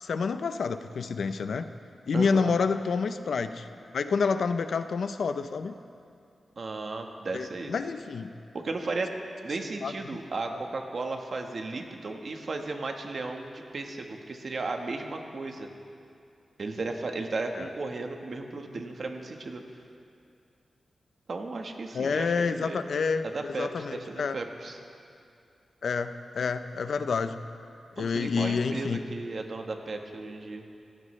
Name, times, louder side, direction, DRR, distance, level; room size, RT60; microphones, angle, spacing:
voice 1, 0.0-1.7 2.1-3.7 3.9-5.7 7.3-8.3 9.8-10.2 17.6-17.7 21.9-23.2 23.6-24.4 25.8-27.4 28.0-29.0, left 5 dB, 70° left, 10 dB, 0.6 m, -28 dB
voice 2, 2.1-2.5 6.6-7.7 8.5-9.2 9.4-15.7 16.6-19.6 21.3-22.8 23.2-24.8 28.0-30.6, right 3 dB, 45° right, 3 dB, 1.3 m, -35 dB
24.5 x 17.0 x 3.2 m, 2.5 s
wide cardioid pair, 160°, 0 cm